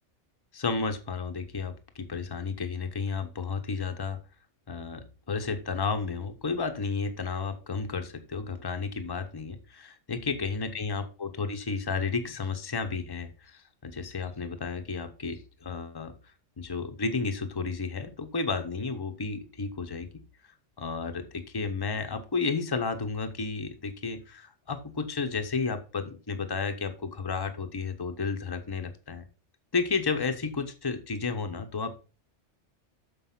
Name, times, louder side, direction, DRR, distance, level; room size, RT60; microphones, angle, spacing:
voice 1, 0.5-4.2 4.7-16.1 16.6-20.1 20.8-29.2 29.7-31.9, left 4 dB, 20° left, 7 dB, 0.8 m, -32 dB
6.7 x 5.5 x 5.7 m, 0.34 s
omnidirectional pair, 1.2 m